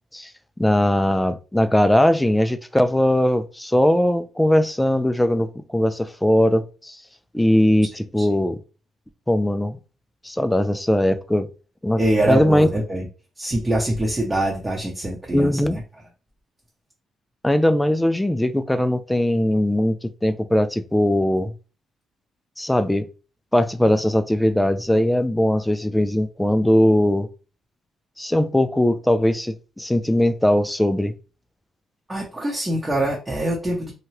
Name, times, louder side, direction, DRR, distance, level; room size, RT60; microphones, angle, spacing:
voice 1, 0.6-7.0 7.3-8.6 9.3-9.8 10.2-11.5 11.8-12.7 15.3-15.8 17.4-21.5 22.6-23.1 23.5-27.3 28.2-31.1, left 1 dB, 5° left, 0.3 m, -20 dB
voice 2, 12.0-13.1 13.4-15.8 32.1-33.9, right 1 dB, 15° right, 0.8 m, -24 dB
2.8 x 2.2 x 3.1 m
cardioid pair, 90°, 0 cm